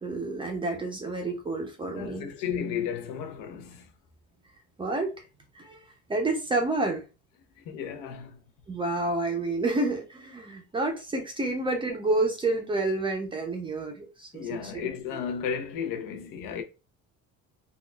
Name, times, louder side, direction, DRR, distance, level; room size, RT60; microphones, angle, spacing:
voice 1, 0.0-2.3 4.8-5.1 5.5-5.8 6.1-7.0 8.7-15.2, right 2 dB, 15° right, 0.5 m, -29 dB
voice 2, 1.9-3.9 7.7-8.4 14.3-16.6, left 7 dB, 75° left, 0.8 m, -33 dB
3.8 x 2.3 x 2.3 m
cardioid pair, 160°, 33 cm